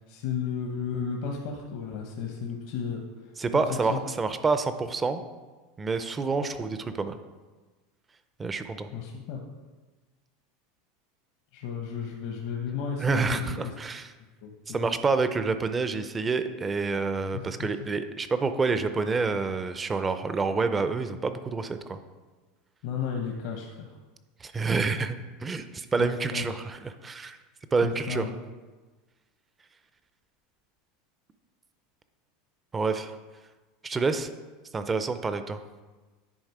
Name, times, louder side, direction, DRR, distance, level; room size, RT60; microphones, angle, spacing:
voice 1, 0.0-4.0 8.9-9.4 11.5-13.7 14.4-14.9 17.3-17.7 22.8-23.9 26.0-26.6 27.8-28.4, left 6 dB, 65° left, 0 dB, 0.9 m, -34 dB
voice 2, 3.4-5.2 5.8-7.2 8.4-8.9 13.0-14.1 14.7-22.0 24.4-27.4 27.7-28.2 32.7-33.1 33.8-34.3 34.7-35.6, right 4 dB, 20° right, 10 dB, 0.5 m, -28 dB
10.0 x 3.9 x 4.8 m, 1.3 s
supercardioid pair, 130°, 0 cm